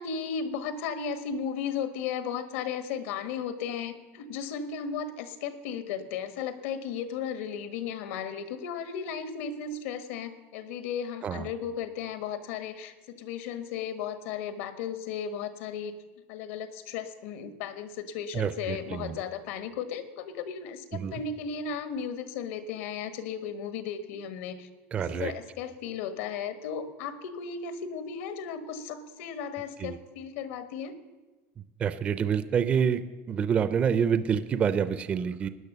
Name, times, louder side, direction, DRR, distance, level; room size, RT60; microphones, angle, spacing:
voice 1, 0.0-15.9 16.3-24.7 25.0-30.9, left 7 dB, 75° left, 11 dB, 1.5 m, -35 dB
voice 2, 18.3-19.1 20.9-21.1 24.9-25.3 29.8-30.0 31.8-33.0 33.3-35.5, right 7 dB, 20° right, 12 dB, 0.4 m, -27 dB
17.0 x 10.5 x 6.8 m, 1.2 s
cardioid pair, 180°, 7 cm